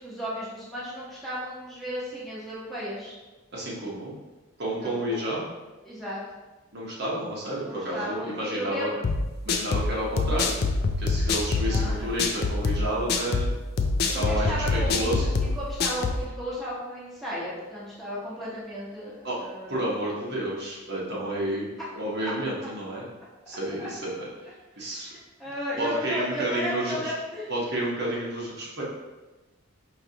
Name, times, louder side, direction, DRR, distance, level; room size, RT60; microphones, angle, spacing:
voice 1, 0.0-3.1 4.8-5.2 5.8-6.2 7.6-9.0 11.7-12.1 14.1-15.3 15.5-19.7 22.2-22.3 23.8-23.9 24.8-27.5, equal, ahead, -9 dB, 0.9 m, -34 dB
voice 2, 3.5-4.1 4.6-5.5 6.7-8.9 9.4-10.5 11.0-13.5 14.0-15.5 19.2-19.4 19.7-21.7 21.9-23.1 23.5-25.1 25.8-27.1 27.5-28.8, right 1 dB, 50° right, -4 dB, 0.9 m, -30 dB
sound 1, 9.0-16.2, left 3 dB, 50° left, 0.4 m, -25 dB
4.8 x 3.2 x 2.8 m, 1.2 s
head